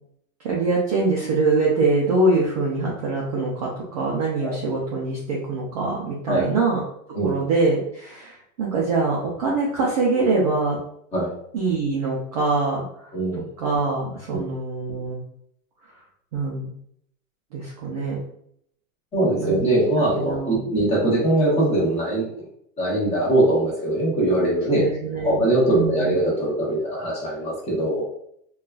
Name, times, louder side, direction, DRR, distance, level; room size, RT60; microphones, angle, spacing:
voice 1, 0.4-6.8 7.2-10.8 11.5-13.1 13.6-15.2 16.3-16.7 17.5-18.2 19.4-20.6 24.7-26.1, right 3 dB, 30° right, -4 dB, 0.4 m, -24 dB
voice 2, 13.1-13.5 14.3-14.4 19.1-22.4 22.8-24.8 25.2-28.0, right 1 dB, 15° left, -6 dB, 0.9 m, -22 dB
3.8 x 2.3 x 2.3 m, 0.69 s
supercardioid pair, 165°, 41 cm